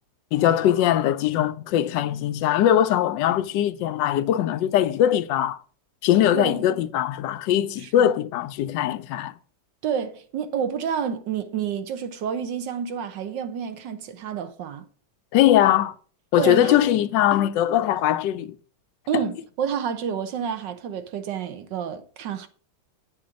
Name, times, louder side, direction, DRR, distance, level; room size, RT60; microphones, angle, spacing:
voice 1, 0.3-5.6 6.0-9.3 15.3-15.9 16.3-18.6 19.1-19.2, left 11 dB, 80° left, 1.2 m, -21 dB
voice 2, 6.3-6.7 7.8-8.1 9.8-14.8 16.4-17.0 19.1-22.5, right 7 dB, 75° right, 1.5 m, -29 dB
9.5 x 5.8 x 5.1 m
omnidirectional pair, 2.0 m